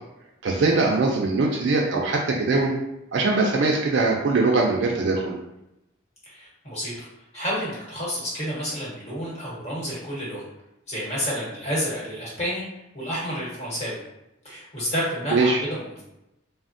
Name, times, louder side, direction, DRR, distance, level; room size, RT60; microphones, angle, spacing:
voice 1, 0.4-2.7 3.1-5.3 15.3-15.6, right 3 dB, 60° right, -1 dB, 0.4 m, -21 dB
voice 2, 6.3-6.9 7.3-10.5 10.9-12.6 12.9-14.0 14.4-16.0, equal, 35° left, -6 dB, 1.1 m, -30 dB
3.4 x 2.0 x 2.5 m, 0.88 s
head